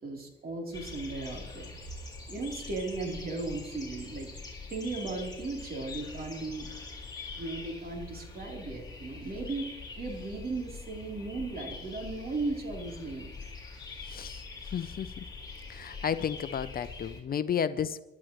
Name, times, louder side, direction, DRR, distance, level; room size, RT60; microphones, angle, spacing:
voice 1, 0.0-1.8 2.3-6.7 7.3-13.3, right 3 dB, 50° right, 3.4 m, -36 dB
sound 1, 0.7-17.2, left 4 dB, 20° left, 3.7 m, -44 dB
voice 2, 14.0-14.4 14.7-15.2 15.7-18.0, left 8 dB, 50° left, 0.6 m, -32 dB
27.0 x 11.5 x 3.1 m
cardioid pair, 90°, 20 cm